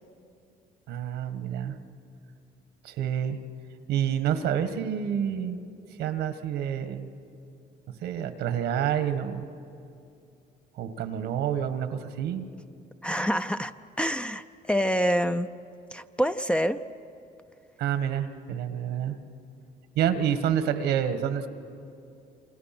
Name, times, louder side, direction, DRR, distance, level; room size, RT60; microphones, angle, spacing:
voice 1, 0.9-1.8 2.8-3.4 3.9-5.6 6.0-7.1 8.0-9.4 10.7-12.5 17.8-19.2 19.9-21.5, right 9 dB, 80° right, 10 dB, 1.5 m, -28 dB
voice 2, 13.0-13.7 14.0-15.5 15.9-16.8, equal, 5° left, 10 dB, 0.5 m, -26 dB
28.5 x 26.0 x 6.0 m, 2.6 s
cardioid pair, 110°, 17 cm